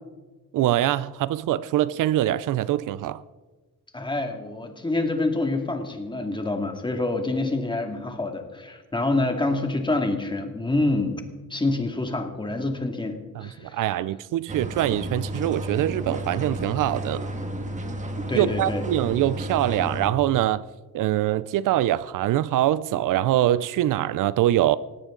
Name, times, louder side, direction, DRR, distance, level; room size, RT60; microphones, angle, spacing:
voice 1, 0.5-3.2 13.4-17.3 18.3-20.6 20.9-24.8, right 13 dB, 70° right, 0.5 m, -23 dB
voice 2, 3.9-11.2 11.5-13.8 18.3-18.8, left 2 dB, 15° left, 2.3 m, -27 dB
sound 1, 14.5-20.1, right 1 dB, 20° right, 2.1 m, -32 dB
19.5 x 16.5 x 3.9 m
cardioid pair, 115°, 33 cm